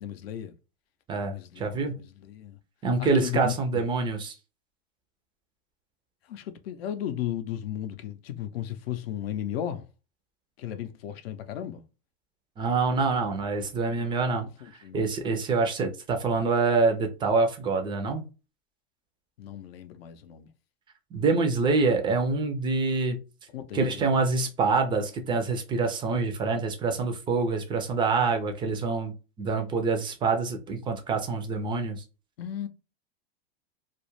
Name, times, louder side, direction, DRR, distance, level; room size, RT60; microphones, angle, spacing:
voice 1, 0.0-0.5 1.2-2.6 3.0-3.8 6.3-9.9 10.6-11.8 13.8-14.1 14.8-15.0 19.4-20.5 23.5-24.0 32.4-32.7, left 11 dB, 80° left, 0.5 m, -35 dB
voice 2, 1.1-2.0 2.8-4.3 12.6-14.5 14.9-18.3 21.1-23.2 23.7-32.0, right 4 dB, 15° right, 0.3 m, -26 dB
2.3 x 2.0 x 3.0 m
supercardioid pair, 125°, 30 cm